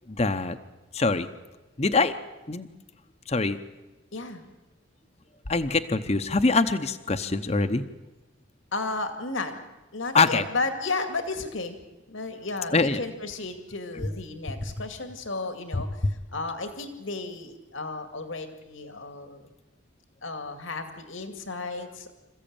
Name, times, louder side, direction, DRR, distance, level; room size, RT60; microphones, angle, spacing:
voice 1, 0.1-0.6 0.9-1.3 1.8-2.2 2.5-2.7 3.3-3.6 5.5-7.8 10.1-10.4 12.7-13.0 15.7-15.8, left 3 dB, 30° left, 10 dB, 0.8 m, -24 dB
voice 2, 4.1-4.4 8.7-9.5 9.9-11.8 12.1-19.5 20.2-22.1, left 3 dB, 80° left, 7 dB, 2.2 m, -33 dB
27.0 x 15.0 x 8.8 m, 1.1 s
head